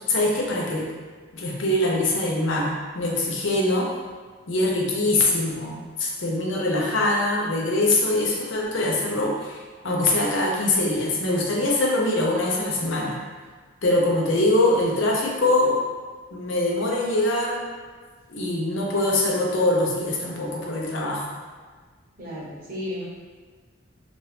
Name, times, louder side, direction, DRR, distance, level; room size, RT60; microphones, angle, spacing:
voice 1, 0.1-0.9 1.3-3.9 4.5-13.2 13.8-15.8 16.3-17.7 18.3-21.2, left 2 dB, 60° left, -2 dB, 0.6 m, -23 dB
voice 2, 22.2-23.1, left 1 dB, 40° right, -8 dB, 1.0 m, -33 dB
3.0 x 2.5 x 3.2 m, 1.5 s
head